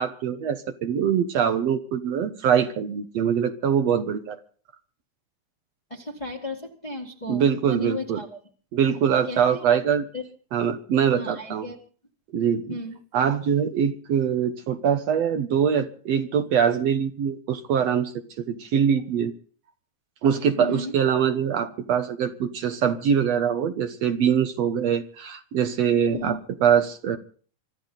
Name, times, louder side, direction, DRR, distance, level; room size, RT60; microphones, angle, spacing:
voice 1, 0.0-4.4 7.3-8.2 8.7-10.1 10.5-11.7 12.3-12.7 13.1-19.3 20.2-27.2, right 8 dB, 65° right, 8 dB, 2.1 m, -23 dB
voice 2, 5.9-8.4 9.3-9.8 10.1-10.2 11.1-11.8 12.7-13.0 20.6-20.9 26.1-26.4, left 1 dB, 15° left, 0 dB, 1.5 m, -34 dB
25.0 x 13.0 x 4.0 m, 0.43 s
omnidirectional pair, 3.4 m